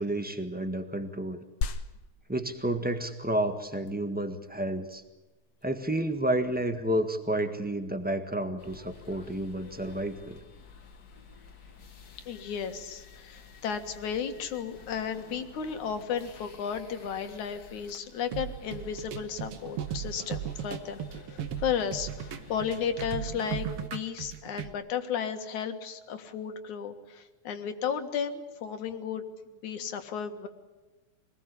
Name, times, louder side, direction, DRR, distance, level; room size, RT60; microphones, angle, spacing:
voice 1, 0.0-1.4 2.3-5.0 5.6-10.4, right 1 dB, 10° right, 7 dB, 0.4 m, -30 dB
sound 1, 1.6-11.6, left 5 dB, 60° left, 2.0 m, -43 dB
sound 2, 8.6-23.9, left 4 dB, 40° left, 1.8 m, -51 dB
voice 2, 12.3-21.0 21.3-29.3 29.6-30.5, left 7 dB, 75° left, 7 dB, 3.2 m, -34 dB
sound 3, 18.3-24.7, right 9 dB, 60° right, 2.0 m, -37 dB
25.5 x 20.0 x 8.4 m, 1.2 s
omnidirectional pair, 3.4 m